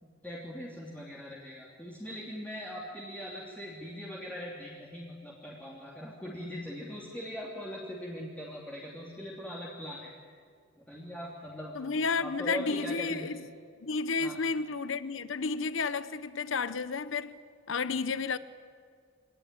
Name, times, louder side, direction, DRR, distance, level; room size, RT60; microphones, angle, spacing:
voice 1, 0.0-10.1 10.7-11.7 12.2-13.3 14.2-14.4, equal, 5° left, 2.9 m, -41 dB
voice 2, 11.7-13.4 13.8-17.4 17.7-18.4, left 4 dB, 65° left, 0.7 m, -31 dB
25.0 x 18.5 x 9.9 m
head